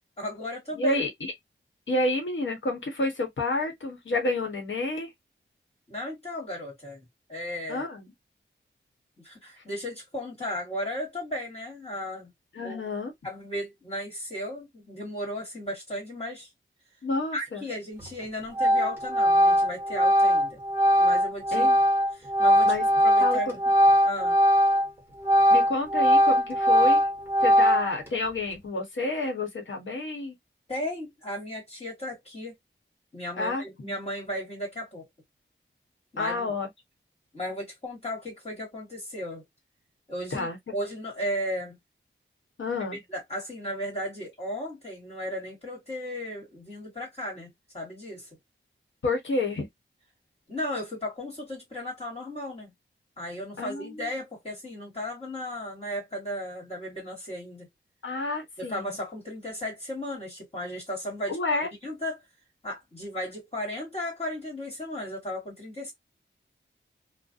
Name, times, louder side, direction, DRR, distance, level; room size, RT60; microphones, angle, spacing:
voice 1, 0.2-1.0 5.9-7.0 7.3-7.8 9.2-12.3 12.6-12.8 13.2-16.5 17.3-20.6 21.0-21.7 22.1-22.7 23.0-23.6 24.0-24.4 30.7-32.6 33.1-35.1 36.1-36.5 37.3-39.4 40.1-41.8 42.9-47.5 47.7-48.3 50.5-52.7 53.2-57.7 58.6-62.2 62.6-65.9, left 1 dB, 30° left, 1.4 m, -35 dB
voice 2, 0.8-1.3 1.9-5.1 7.7-8.1 12.5-13.1 17.0-17.6 21.5-21.8 22.6-22.8 23.2-23.4 25.5-27.1 27.4-30.3 33.4-33.9 36.2-36.7 40.3-40.6 42.6-43.0 49.0-49.7 53.6-54.1 58.0-58.9 61.3-61.7, left 2 dB, 70° left, 1.0 m, -29 dB
Organ, 18.0-18.2 18.6-24.9 25.2-28.1, equal, 10° right, 1.1 m, -21 dB
2.4 x 2.1 x 2.5 m
wide cardioid pair, 80°, 20 cm